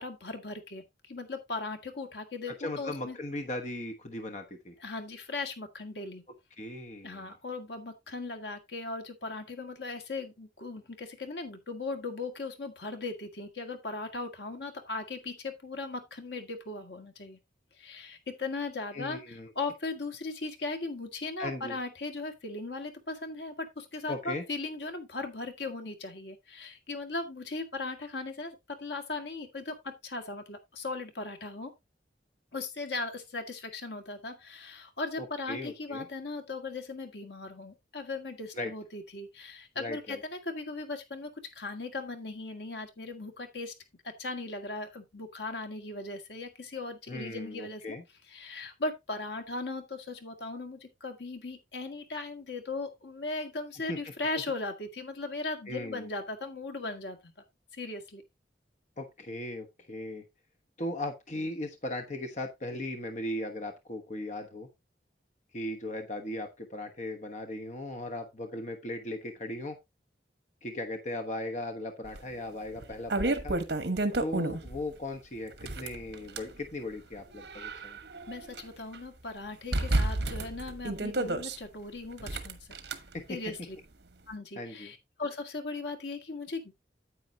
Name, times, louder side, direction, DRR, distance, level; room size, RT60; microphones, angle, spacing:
voice 1, 0.0-3.2 4.8-6.2 7.0-17.4 17.8-31.7 32.5-43.7 44.0-48.0 48.3-57.3 57.7-58.2 78.3-82.8 83.3-83.8 84.3-86.7, left 3 dB, 80° left, 1.8 m, -38 dB
voice 2, 2.6-4.7 6.6-7.3 18.9-19.5 21.4-21.7 24.1-24.4 35.2-36.1 38.5-38.7 39.8-40.2 47.1-48.0 53.9-54.0 55.7-56.1 59.0-60.2 60.8-64.7 65.5-69.8 70.6-73.5 74.2-78.0 83.1-83.4 84.6-84.9, left 1 dB, 45° left, 1.2 m, -37 dB
sound 1, 72.2-72.3 72.8-74.8 75.5-76.5 77.2-78.6 78.9-79.0 79.7-81.6 82.2-83.0, right 2 dB, 65° right, 1.2 m, -30 dB
9.4 x 8.6 x 2.8 m
head